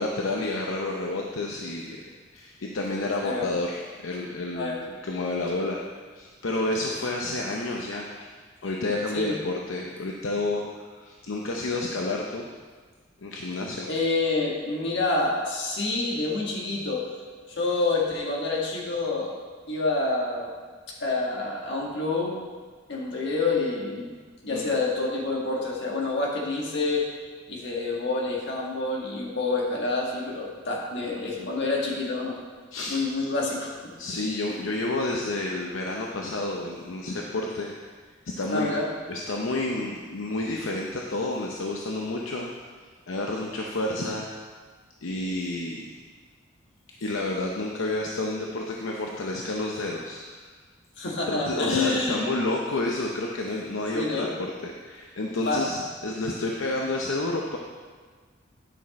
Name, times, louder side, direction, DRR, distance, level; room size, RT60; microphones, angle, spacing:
voice 1, 0.0-2.0 2.3-8.1 8.6-12.5 13.2-13.9 24.5-24.7 31.4-31.5 32.7-33.0 34.0-37.9 38.3-38.7 39.1-42.7 43.1-44.3 45.0-45.9 47.0-50.4 51.3-54.3 54.6-57.6, left 2 dB, 80° left, -1 dB, 0.7 m, -30 dB
voice 2, 13.9-17.0 17.6-19.3 19.7-20.5 21.0-22.4 22.9-24.1 24.4-27.0 27.5-32.4 32.9-33.9 38.5-38.9 51.0-52.3 53.9-54.3 55.5-55.7, left 3 dB, 60° left, -2 dB, 1.7 m, -27 dB
10.0 x 6.1 x 4.2 m, 1.5 s
head